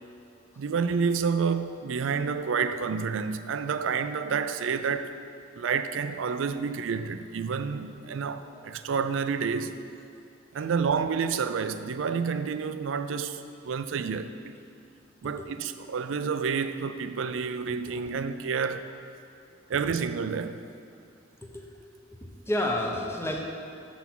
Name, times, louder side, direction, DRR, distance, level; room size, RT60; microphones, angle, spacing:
voice 1, 0.6-5.1 5.6-9.8 10.5-14.5 15.2-18.9 19.7-20.6, right 5 dB, 80° right, 0.4 m, -29 dB
voice 2, 8.4-8.8 10.5-10.7 15.2-15.5 17.9-18.0 21.4-21.6 22.1-23.4, left 1 dB, 15° left, 0.9 m, -32 dB
6.9 x 6.0 x 6.1 m
head